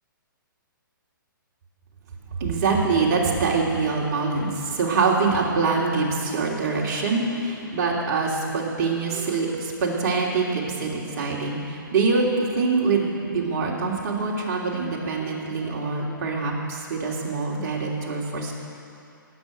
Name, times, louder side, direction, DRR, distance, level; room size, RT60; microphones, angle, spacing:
voice 1, 2.3-18.5, right 4 dB, 50° right, -3 dB, 3.1 m, -24 dB
18.5 x 7.9 x 6.7 m, 2.7 s
hypercardioid pair, 135°, 11 cm